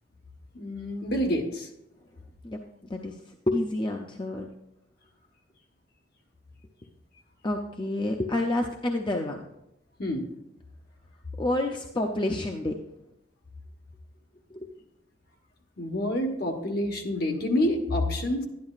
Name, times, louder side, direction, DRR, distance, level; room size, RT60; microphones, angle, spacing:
voice 1, 0.5-1.7 10.0-10.2 15.8-18.4, left 1 dB, 55° left, 2 dB, 1.2 m, -27 dB
voice 2, 2.4-3.2 3.5-4.5 7.4-9.5 11.4-12.7 14.5-14.7, left 1 dB, 25° left, 2 dB, 0.5 m, -29 dB
11.5 x 10.5 x 2.4 m, 0.85 s
head